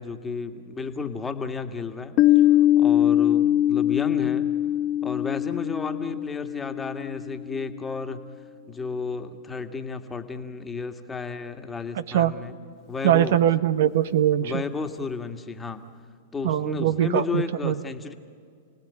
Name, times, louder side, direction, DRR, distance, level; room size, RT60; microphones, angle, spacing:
voice 1, 0.0-2.1 2.8-4.5 5.0-8.2 8.7-12.6 12.9-13.4 14.4-15.8 16.3-18.1, left 4 dB, 15° left, 6 dB, 1.8 m, -32 dB
Piano, 2.2-7.5, left 12 dB, 40° left, 1.2 m, -22 dB
voice 2, 13.0-14.6 16.4-17.8, right 11 dB, 65° right, 12 dB, 1.0 m, -22 dB
29.0 x 18.0 x 9.8 m, 2.2 s
hypercardioid pair, 110°, 0 cm